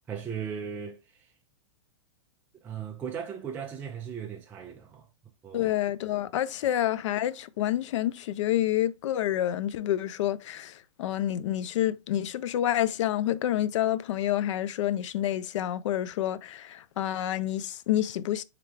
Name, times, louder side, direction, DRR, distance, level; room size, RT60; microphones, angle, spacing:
voice 1, 0.1-1.0 2.6-5.0 5.4-5.7, right 7 dB, 10° right, 0.4 m, -37 dB
voice 2, 5.5-10.7 11.0-18.4, left 12 dB, 70° left, 0.4 m, -28 dB
3.5 x 3.2 x 3.4 m
supercardioid pair, 160°, 16 cm